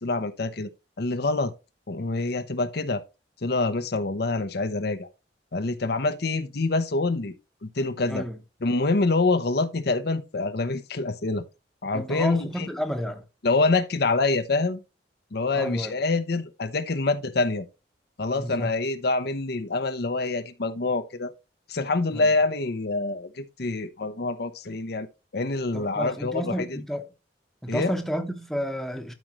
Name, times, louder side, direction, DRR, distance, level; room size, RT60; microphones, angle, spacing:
voice 1, 0.0-0.7 1.0-1.5 1.9-3.0 3.4-5.1 5.5-7.3 7.6-8.2 8.6-11.4 11.8-12.7 13.4-14.8 15.3-17.7 18.2-21.3 21.7-25.1 25.3-26.8 27.7-27.9, left 3 dB, 60° left, 0.8 m, -26 dB
voice 2, 8.1-8.4 11.9-13.2 15.5-15.9 18.3-18.7 22.1-22.3 25.7-27.0 27.6-29.1, equal, ahead, 1.0 m, -31 dB
12.5 x 5.3 x 3.1 m
head